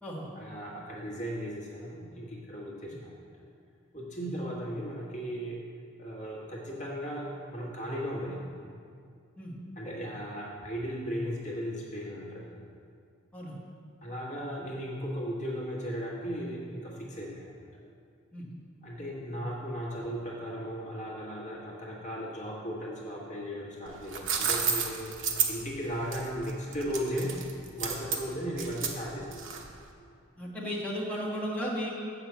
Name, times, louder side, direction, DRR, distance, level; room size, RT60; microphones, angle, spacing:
voice 1, 0.3-3.3 3.9-5.6 6.0-8.5 9.8-12.6 14.0-17.6 18.8-27.4 27.7-29.7, equal, 40° left, -3 dB, 1.3 m, -36 dB
sound 1, 23.9-29.8, right 6 dB, 65° right, 0.9 m, -31 dB
voice 2, 30.4-31.9, equal, 5° left, -6 dB, 1.4 m, -35 dB
7.3 x 5.8 x 7.2 m, 2.3 s
head